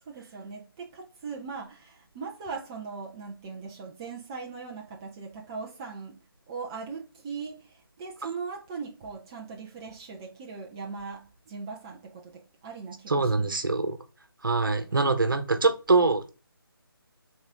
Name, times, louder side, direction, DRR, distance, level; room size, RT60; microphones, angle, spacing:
voice 1, 0.1-6.2 6.5-13.6, right 5 dB, 10° right, 0.5 m, -39 dB
voice 2, 13.1-14.0 14.4-16.3, right 3 dB, 60° right, 1.1 m, -24 dB
8.0 x 3.8 x 3.5 m
figure-of-eight pair, 155°, 12 cm